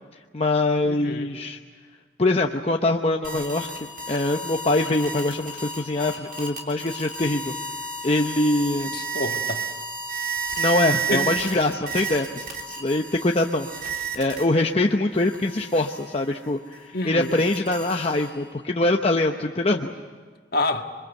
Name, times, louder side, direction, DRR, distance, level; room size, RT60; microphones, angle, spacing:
voice 1, 0.3-1.6 2.2-3.7 4.1-7.5 8.0-9.0 10.6-19.9, left 2 dB, 30° left, 2 dB, 0.8 m, -23 dB
voice 2, 0.8-1.3 8.9-9.6 11.1-11.3 16.9-17.4 20.5-20.8, left 2 dB, 55° left, 5 dB, 1.6 m, -27 dB
sound 1, 3.2-14.7 15.1-18.5, right 4 dB, 50° right, 3.2 m, -32 dB
27.0 x 23.0 x 8.1 m, 1.5 s
head